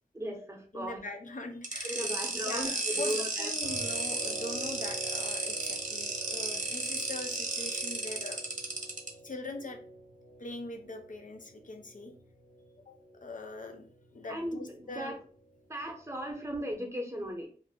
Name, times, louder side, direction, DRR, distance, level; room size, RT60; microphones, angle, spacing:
voice 1, 0.1-1.0 1.8-3.5 14.3-15.2 15.7-17.5, equal, 20° right, 1 dB, 0.7 m, -37 dB
voice 2, 0.7-2.1 2.4-8.4 9.2-9.8 10.4-12.1 12.9-13.0 13.2-13.9 14.1-15.2, left 2 dB, 60° left, 4 dB, 0.5 m, -42 dB
sound 1, 1.6-9.1, right 2 dB, 55° right, 0.6 m, -34 dB
sound 2, 3.6-16.6, right 2 dB, 90° left, 0.9 m, -48 dB
2.6 x 2.0 x 3.4 m, 0.44 s
wide cardioid pair, 65°, 15 cm